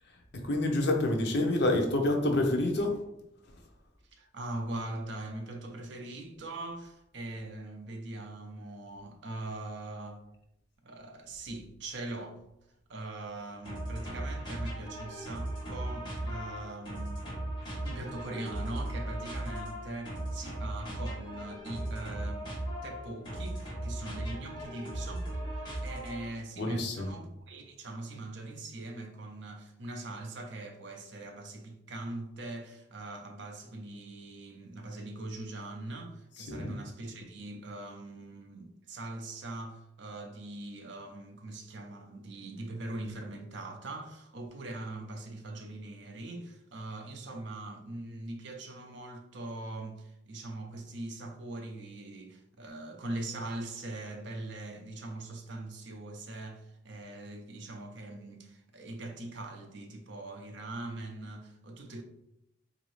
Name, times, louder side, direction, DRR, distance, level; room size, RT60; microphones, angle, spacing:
voice 1, 0.4-3.0 26.6-27.1 36.5-36.8, left 1 dB, 55° left, 0.6 m, -27 dB
voice 2, 4.2-10.2 10.8-12.4 12.9-17.3 17.8-22.5 22.8-25.3 25.8-62.0, right 2 dB, 60° right, 0.5 m, -41 dB
sound 1, 13.7-26.4, right 1 dB, 20° left, 1.1 m, -37 dB
3.9 x 2.6 x 3.1 m
head